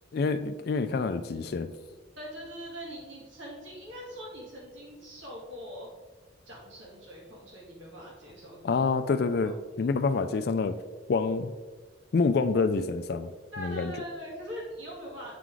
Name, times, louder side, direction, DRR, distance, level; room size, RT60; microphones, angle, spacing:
voice 1, 0.1-1.7 8.6-10.8 11.1-11.5 12.1-13.3 13.6-13.9, left 4 dB, 55° left, 10 dB, 0.3 m, -27 dB
voice 2, 2.2-5.9 6.5-8.8 9.4-9.5 13.5-15.4, equal, 80° right, -4 dB, 2.3 m, -42 dB
8.3 x 4.7 x 3.8 m, 1.3 s
head